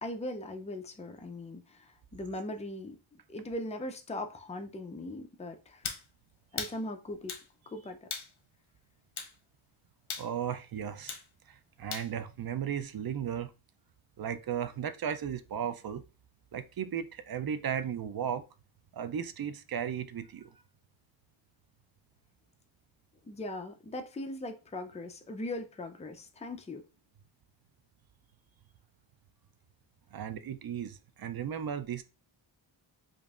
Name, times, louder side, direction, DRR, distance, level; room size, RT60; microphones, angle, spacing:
voice 1, 0.0-3.0 3.3-5.8 6.5-7.3 7.7-8.1 23.3-26.9, left 1 dB, 15° left, 0.4 m, -39 dB
sound 1, 5.8-6.1 6.6-6.8 7.3-7.5 8.1-8.3 9.2-9.3 10.1-10.3 11.1-11.3 11.9-12.1, left 6 dB, 75° left, 0.8 m, -37 dB
voice 2, 10.2-11.2 11.5-13.5 14.2-16.0 16.5-18.4 18.9-20.6 30.1-32.0, right 8 dB, 50° right, 0.5 m, -35 dB
5.1 x 2.6 x 2.4 m
wide cardioid pair, 90°, 49 cm